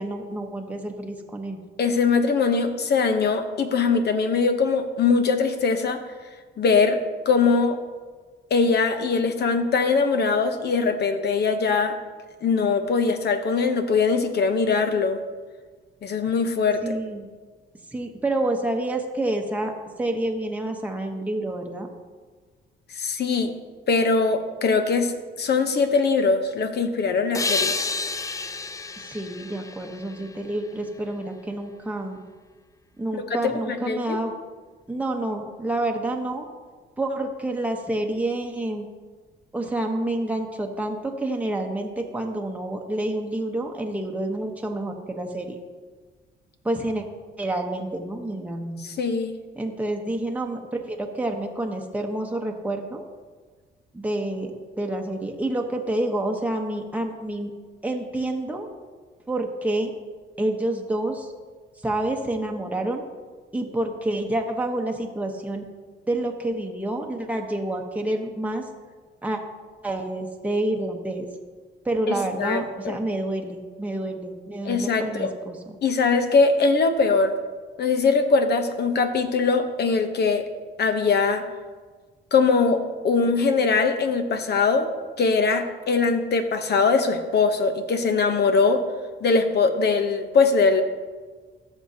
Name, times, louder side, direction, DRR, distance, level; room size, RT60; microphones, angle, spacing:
voice 1, 0.0-1.6 16.8-17.3 17.9-19.7 20.0-21.9 29.0-32.2 33.0-34.3 34.9-36.5 37.0-38.9 39.5-45.6 46.6-47.0 47.4-48.8 49.6-53.0 53.9-57.5 57.8-58.7 59.3-59.9 60.4-61.3 61.8-63.0 63.5-65.6 66.1-68.6 69.2-69.4 69.8-71.3 71.8-75.8, right 1 dB, 5° right, 2 dB, 1.0 m, -28 dB
voice 2, 1.8-6.0 6.6-7.8 8.5-12.0 12.4-15.2 16.0-16.8 22.9-23.5 23.9-27.8 33.1-34.2 48.8-49.3 72.1-73.0 74.6-75.3 75.8-77.3 77.8-80.4 80.8-81.4 82.3-84.9 85.2-88.8 89.2-90.8, left 4 dB, 55° left, 8 dB, 0.9 m, -21 dB
sound 1, 27.3-30.8, left 4 dB, 15° left, 0.4 m, -30 dB
14.5 x 6.2 x 2.8 m, 1.4 s
cardioid pair, 90°, 20 cm